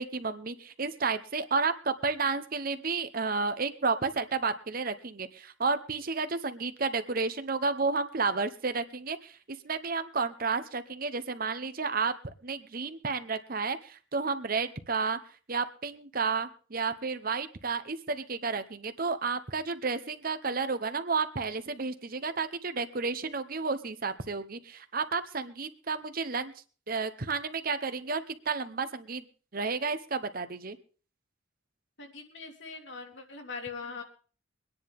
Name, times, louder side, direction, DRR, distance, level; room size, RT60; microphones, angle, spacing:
voice 1, 0.0-9.4 9.6-15.2 15.5-26.5 26.9-29.2 29.5-30.8, right 4 dB, 50° right, 11 dB, 0.9 m, -31 dB
voice 2, 32.0-34.0, left 4 dB, 70° left, 2 dB, 2.9 m, -41 dB
23.5 x 10.0 x 3.6 m, 0.39 s
head